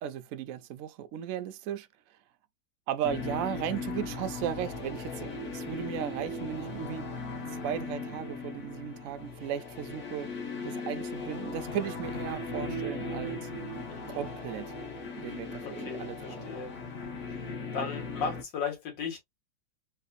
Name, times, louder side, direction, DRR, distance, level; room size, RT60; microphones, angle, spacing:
voice 1, 0.0-1.9 2.9-7.0 7.6-10.3 10.6-13.5 14.1-14.7 15.2-16.4, right 9 dB, 80° right, 0.7 m, -36 dB
sound 1, 3.0-18.4, left 3 dB, 45° left, 1.3 m, -38 dB
voice 2, 13.9-14.3 15.6-16.8 17.3-17.4 17.7-19.2, left 5 dB, 85° left, 2.0 m, -36 dB
3.3 x 3.1 x 2.4 m
omnidirectional pair, 1.9 m